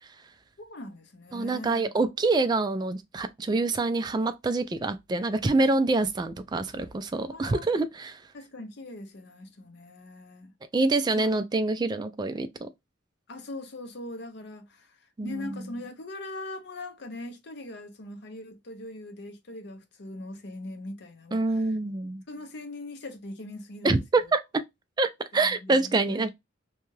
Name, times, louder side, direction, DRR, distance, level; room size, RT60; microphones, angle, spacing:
voice 1, 0.6-1.9 7.3-7.7 8.3-10.5 11.1-11.3 13.3-21.6 22.3-23.9 25.4-26.3, left 1 dB, 60° left, 0.6 m, -41 dB
voice 2, 1.3-8.2 10.7-12.7 15.2-15.6 21.3-22.2 23.8-24.6 25.0-26.3, right 3 dB, 20° right, 0.3 m, -26 dB
2.7 x 2.3 x 3.1 m
head